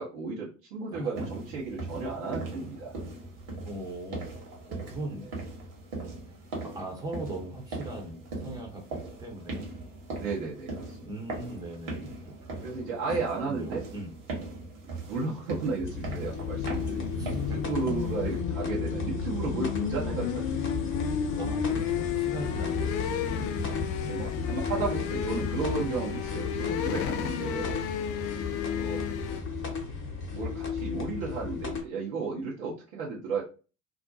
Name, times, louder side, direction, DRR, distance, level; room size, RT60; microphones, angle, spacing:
voice 1, 0.0-2.9 10.1-11.1 12.6-13.8 15.0-20.6 21.2-21.5 22.7-22.9 24.0-27.8 28.8-29.0 29.8-29.9 30.3-33.4, right 4 dB, 70° right, -4 dB, 0.8 m, -34 dB
voice 2, 0.9-1.3 3.6-4.3 4.7-5.4 6.2-9.7 11.0-12.7 13.4-14.2 17.2-17.6 21.4-23.0 23.5-24.2, right 2 dB, 10° right, 0 dB, 0.7 m, -40 dB
sound 1, 1.1-18.4, right 2 dB, 50° right, 1.1 m, -40 dB
sound 2, 15.7-29.4, left 9 dB, 55° left, 0.5 m, -34 dB
sound 3, 15.8-31.8, left 5 dB, 30° left, 0.9 m, -33 dB
2.4 x 2.1 x 2.5 m, 0.35 s
figure-of-eight pair, 65°, 42 cm